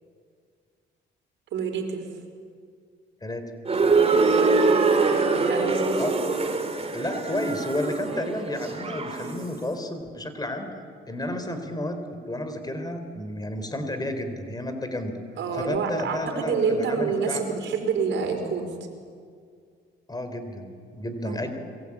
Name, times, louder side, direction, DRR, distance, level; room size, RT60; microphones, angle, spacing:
voice 1, 1.5-2.1 4.3-4.6 5.1-6.0 15.4-18.7 21.2-21.4, right 5 dB, 75° right, 4 dB, 4.7 m, -27 dB
voice 2, 3.2-3.5 6.0-6.1 6.9-12.0 12.3-15.2 15.5-17.6 20.1-21.5, left 1 dB, 20° left, 8 dB, 3.9 m, -32 dB
sound 1, 3.7-9.6, right 4 dB, 30° right, 3.2 m, -23 dB
27.5 x 22.5 x 8.7 m, 2.1 s
cardioid pair, 90°, 20 cm